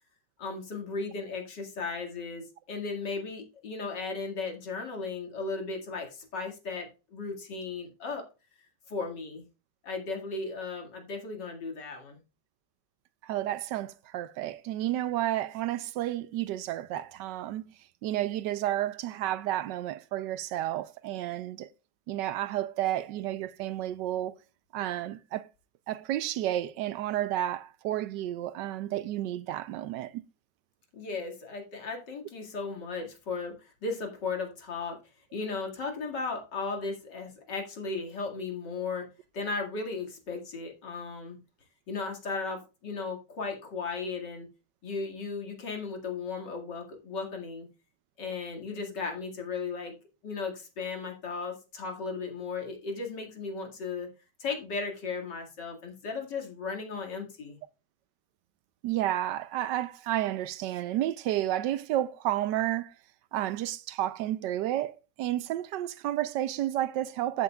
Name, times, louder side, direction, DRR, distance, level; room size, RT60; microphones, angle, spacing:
voice 1, 0.4-8.2 8.9-9.4 9.8-12.2 30.9-35.0 35.3-39.0 39.3-41.4 41.9-44.5 44.8-47.7 48.2-49.9 50.2-54.1 54.4-57.6, left 4 dB, 80° left, 2.8 m, -36 dB
voice 2, 13.2-17.7 18.0-21.7 22.1-24.4 24.7-25.5 25.9-30.2 58.8-62.9 63.3-67.4, right 13 dB, 90° right, 1.3 m, -31 dB
14.5 x 7.0 x 2.3 m
omnidirectional pair, 1.9 m